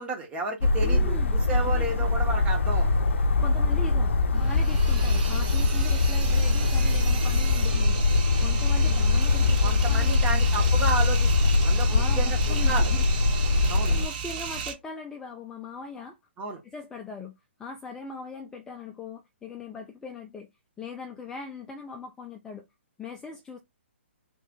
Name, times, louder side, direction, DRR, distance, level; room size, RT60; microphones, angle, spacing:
voice 1, 0.0-2.9 9.6-12.9 13.7-13.9 16.4-16.6, right 3 dB, 20° right, 1.0 m, -32 dB
sound 1, 0.6-14.1, left 3 dB, 75° left, 0.5 m, -22 dB
voice 2, 0.8-1.3 1.6-2.1 3.4-8.0 8.4-10.4 11.9-13.0 13.5-16.2 16.6-17.3 17.6-20.5 20.8-22.6 23.0-23.6, left 4 dB, 10° left, 0.4 m, -40 dB
sound 2, 4.4-14.7, right 6 dB, 40° right, 0.9 m, -36 dB
3.2 x 2.5 x 3.7 m
hypercardioid pair, 140°, 7 cm